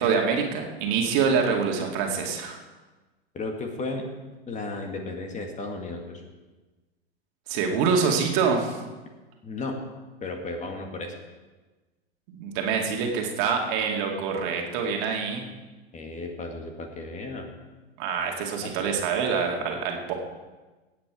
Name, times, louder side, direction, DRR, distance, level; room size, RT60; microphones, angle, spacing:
voice 1, 0.0-2.6 7.5-8.8 12.3-15.4 18.0-20.1, right 5 dB, 50° right, 1 dB, 2.3 m, -25 dB
voice 2, 3.3-4.1 4.5-6.2 9.4-9.8 10.2-11.1 15.9-17.5 18.6-18.8, left 3 dB, 25° left, 4 dB, 1.9 m, -34 dB
17.0 x 8.5 x 4.9 m, 1.2 s
hypercardioid pair, 95°, 31 cm